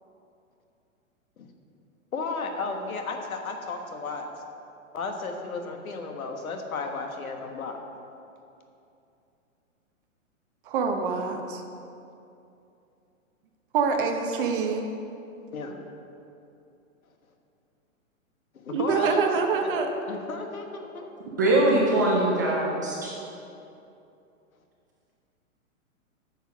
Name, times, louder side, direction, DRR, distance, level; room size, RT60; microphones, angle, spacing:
voice 1, 2.1-4.3 4.9-7.8 15.5-15.8 18.6-19.2 19.6-19.8 20.1-21.1, left 4 dB, 85° left, 4 dB, 1.6 m, -34 dB
voice 2, 10.7-11.6 13.7-14.9 18.7-19.9, right 5 dB, 40° right, 4 dB, 1.0 m, -25 dB
voice 3, 21.4-23.1, right 1 dB, 15° right, -3 dB, 0.4 m, -22 dB
9.1 x 6.7 x 6.2 m, 2.7 s
hypercardioid pair, 155°, 41 cm